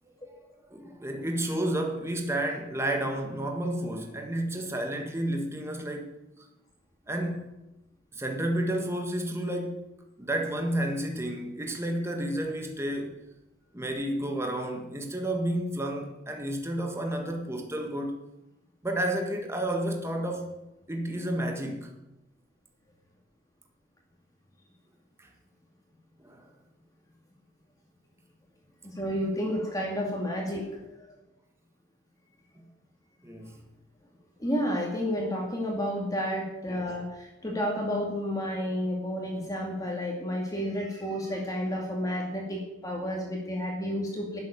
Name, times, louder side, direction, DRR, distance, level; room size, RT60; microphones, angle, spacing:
voice 1, 0.7-6.1 7.1-7.5 8.1-9.9 10.2-13.2 13.7-18.2 18.8-20.6 20.9-21.9 25.2-25.3 26.2-26.5 32.5-32.6 33.2-33.6, right 1 dB, 15° right, 3 dB, 1.6 m, -31 dB
voice 2, 28.8-30.9 34.4-44.4, equal, 15° left, -1 dB, 2.3 m, -31 dB
12.0 x 7.6 x 9.0 m, 0.96 s
head